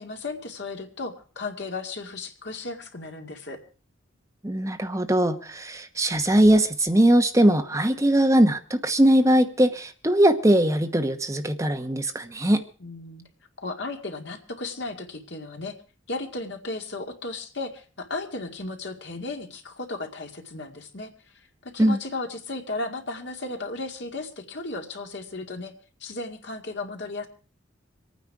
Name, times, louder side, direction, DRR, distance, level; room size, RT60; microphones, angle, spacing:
voice 1, 0.0-3.6 12.8-13.2 13.6-15.7 16.1-25.7 26.0-27.3, left 2 dB, 60° left, 4 dB, 2.2 m, -35 dB
voice 2, 4.4-12.6 21.8-22.0, right 1 dB, 15° right, 6 dB, 1.1 m, -20 dB
24.5 x 9.4 x 4.7 m, 0.39 s
head